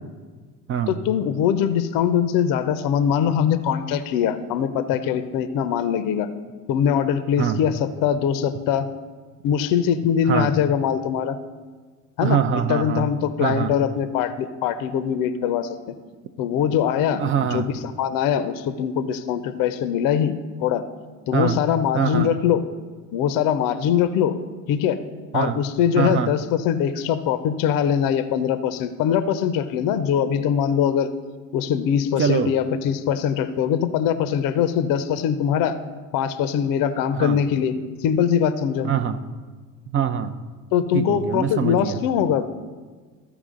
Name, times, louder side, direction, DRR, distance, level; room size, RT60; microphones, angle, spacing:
voice 1, 0.9-6.3 6.7-8.9 9.4-11.4 12.2-12.4 12.7-15.8 16.4-17.2 17.5-20.3 20.6-20.8 21.3-22.6 23.1-24.3 24.7-25.0 25.3-31.1 31.5-35.8 36.1-37.7 38.0-38.9 40.7-42.5, left 8 dB, 45° left, 11 dB, 0.7 m, -22 dB
voice 2, 12.2-13.1 13.4-13.7 17.2-17.7 21.3-21.6 21.9-22.3 25.3-25.6 26.0-26.3 32.2-32.5 37.1-37.4 38.8-39.2 39.9-40.4 40.9-42.0, right 8 dB, 30° right, 10 dB, 0.6 m, -23 dB
14.0 x 4.8 x 3.7 m, 1.4 s
hypercardioid pair, 65°, 45 cm